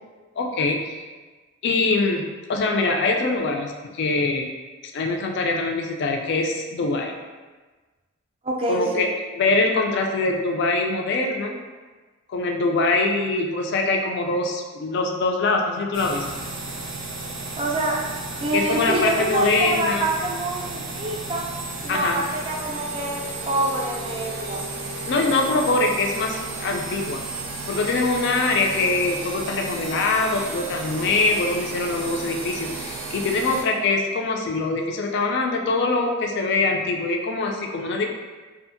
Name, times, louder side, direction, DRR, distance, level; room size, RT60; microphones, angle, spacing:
voice 1, 0.4-1.0 1.6-4.5 4.9-7.1 8.7-11.6 12.3-16.4 18.5-20.0 21.9-22.2 25.1-27.2 27.7-38.1, left 3 dB, 55° left, 2 dB, 0.3 m, -23 dB
voice 2, 8.4-8.8 17.6-18.0 18.4-21.4 21.8-24.7, right 1 dB, 25° right, -2 dB, 0.4 m, -26 dB
sound 1, 15.9-33.6, right 3 dB, 85° right, 0.5 m, -33 dB
2.6 x 2.4 x 2.5 m, 1.3 s
head